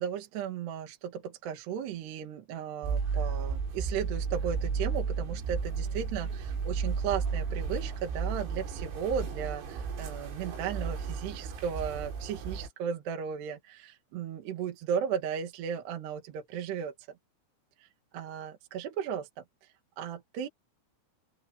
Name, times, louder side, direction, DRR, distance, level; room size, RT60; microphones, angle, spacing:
voice 1, 0.0-16.9 17.8-17.9 18.1-19.3 20.0-20.5, right 8 dB, 60° right, 3.7 m, -35 dB
sound 1, 2.8-12.7, right 5 dB, 85° right, 8.7 m, -33 dB
open air
omnidirectional pair, 6.0 m